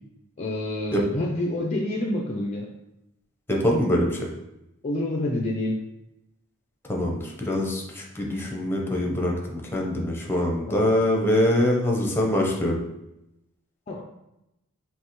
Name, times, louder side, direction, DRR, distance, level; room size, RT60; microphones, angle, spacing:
voice 1, 0.4-2.7 4.8-5.8 10.7-10.9 13.9-14.0, left 1 dB, 30° left, -1 dB, 0.5 m, -28 dB
voice 2, 3.5-4.3 6.9-12.8, left 1 dB, 10° left, -1 dB, 0.8 m, -24 dB
5.3 x 3.1 x 3.0 m, 0.88 s
head